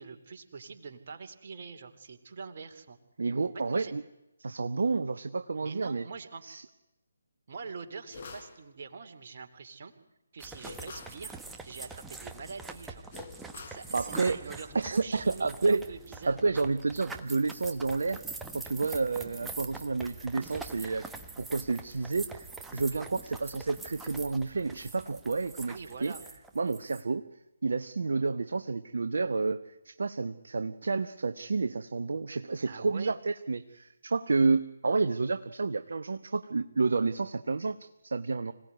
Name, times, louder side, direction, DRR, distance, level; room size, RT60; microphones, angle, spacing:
voice 1, 0.0-3.0 3.5-3.9 5.6-6.4 7.5-9.9 10.3-13.1 13.7-16.6 25.7-26.2 32.6-33.2, right 5 dB, 45° right, 5 dB, 2.8 m, -44 dB
voice 2, 3.2-4.0 4.4-6.0 6.4-6.6 13.9-14.4 14.7-15.8 16.3-18.2 18.5-21.1 21.4-26.1 26.6-27.2 27.6-38.5, right 3 dB, 60° right, 9 dB, 1.0 m, -30 dB
sound 1, 8.1-8.6 10.6-11.2 13.1-13.9, left 4 dB, 40° left, 4.1 m, -45 dB
sound 2, 10.4-27.0, right 3 dB, 5° right, 1.3 m, -44 dB
26.0 x 17.5 x 9.5 m, 0.94 s
figure-of-eight pair, 145°, 0 cm